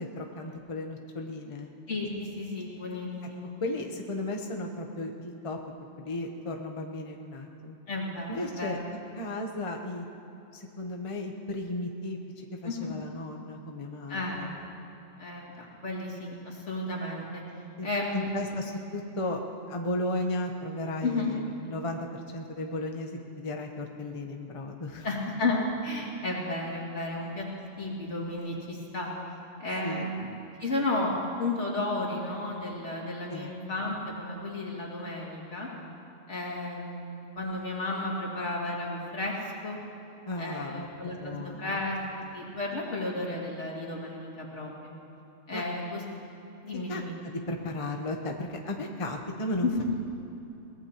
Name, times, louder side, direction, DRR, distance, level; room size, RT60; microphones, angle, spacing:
voice 1, 0.0-1.7 3.6-5.6 6.0-7.8 8.3-8.8 9.2-10.0 10.5-14.5 17.8-19.4 19.7-25.1 29.8-30.1 33.3-33.6 40.3-41.8 45.5-45.6 46.9-49.8, left 1 dB, 30° left, 2 dB, 0.9 m, -35 dB
voice 2, 1.9-3.5 7.9-8.8 12.6-13.0 14.1-14.5 15.2-17.4 17.8-18.6 21.0-21.3 25.0-29.1 29.6-30.3 30.6-35.7 36.3-39.3 39.6-39.8 40.4-44.9 45.5-46.0 46.6-47.2 49.6-49.8, left 2 dB, 65° left, -3 dB, 2.7 m, -33 dB
22.0 x 18.0 x 3.0 m, 2.9 s
omnidirectional pair, 1.3 m